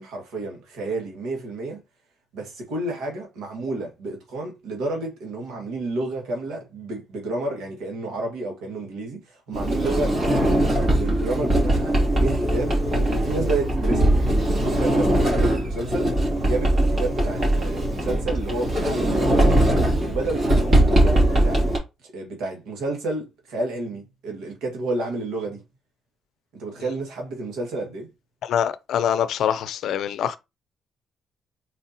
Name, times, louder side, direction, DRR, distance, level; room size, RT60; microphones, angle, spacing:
voice 1, 0.0-1.8 2.3-10.6 10.9-19.5 20.0-21.7 22.1-25.6 26.5-28.1, right 2 dB, 85° right, 1.7 m, -30 dB
Sliding door, 9.5-21.8, right 1 dB, 40° right, 2.7 m, -21 dB
voice 2, 28.4-30.4, left 9 dB, 75° left, 0.5 m, -24 dB
4.3 x 4.0 x 2.8 m
cardioid pair, 90°, 0 cm